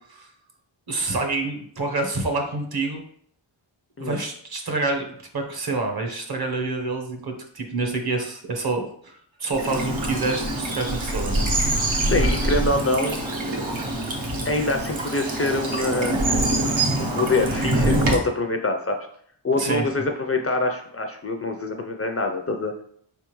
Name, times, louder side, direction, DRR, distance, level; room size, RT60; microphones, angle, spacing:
voice 1, 0.9-3.0 4.0-11.5 19.6-19.9, right 3 dB, 50° right, 3 dB, 0.9 m, -27 dB
Bird vocalization bird call bird song / Stream, 9.5-18.2, right 1 dB, 75° right, 1.0 m, -24 dB
voice 2, 12.0-13.2 14.4-16.2 17.0-19.0 19.4-22.8, left 2 dB, 35° left, 4 dB, 0.4 m, -25 dB
4.5 x 3.4 x 3.0 m, 0.63 s
wide cardioid pair, 85°, 47 cm